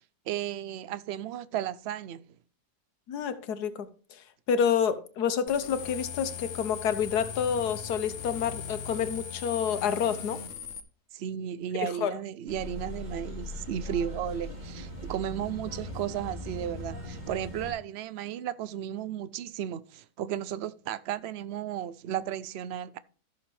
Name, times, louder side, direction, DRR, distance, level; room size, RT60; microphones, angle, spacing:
voice 1, 0.3-2.3 11.1-23.0, right 10 dB, 70° right, 0.6 m, -34 dB
voice 2, 3.1-3.9 4.5-10.4 11.8-12.1, left 7 dB, 80° left, 1.4 m, -28 dB
sound 1, 5.5-10.8, left 7 dB, 55° left, 1.1 m, -39 dB
sound 2, 12.5-17.7, left 1 dB, 25° right, 3.1 m, -39 dB
14.0 x 6.6 x 3.3 m
omnidirectional pair, 1.7 m